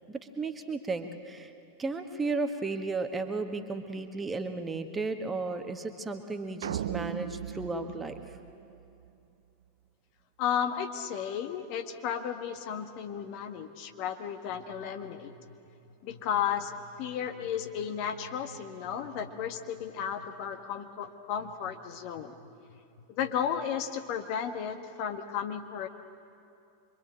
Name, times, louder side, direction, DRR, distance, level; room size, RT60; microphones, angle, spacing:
voice 1, 0.1-1.5 1.8-8.2, right 3 dB, 15° right, 6 dB, 1.6 m, -34 dB
sound 1, 6.6-9.1, right 10 dB, 60° right, 0.6 m, -37 dB
voice 2, 10.4-15.6 16.0-22.3 22.7-22.8 23.1-25.9, left 8 dB, 45° left, 6 dB, 1.5 m, -34 dB
26.0 x 23.5 x 8.8 m, 2.6 s
figure-of-eight pair, 90°, 0 cm